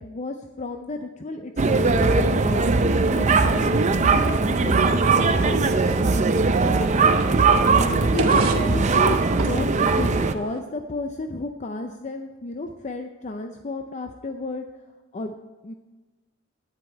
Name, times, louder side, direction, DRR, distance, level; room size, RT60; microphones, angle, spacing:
voice 1, 0.0-2.7 3.1-5.7 7.0-7.2 7.7-14.7 15.1-15.4 15.6-15.7, left 2 dB, 35° left, 6 dB, 0.5 m, -32 dB
sound 1, 1.6-10.3, right 4 dB, 35° right, 0.5 m, -20 dB
sound 2, 3.1-10.6, right 2 dB, 85° right, 1.1 m, -35 dB
11.0 x 9.8 x 4.4 m, 1.3 s
head